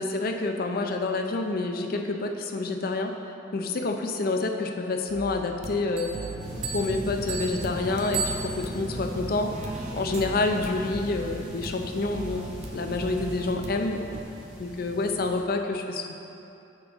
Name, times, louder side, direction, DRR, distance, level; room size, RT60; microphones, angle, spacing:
voice 1, 0.0-3.1 3.5-6.1 6.7-14.0 14.6-16.1, left 3 dB, 55° left, 4 dB, 0.6 m, -28 dB
sound 1, 5.1-14.2, right 2 dB, 35° right, 0.5 m, -40 dB
sound 2, 6.0-9.0, right 5 dB, 75° right, 0.8 m, -35 dB
sound 3, 6.4-15.4, equal, 5° right, 1.4 m, -38 dB
8.6 x 6.4 x 3.6 m, 2.8 s
head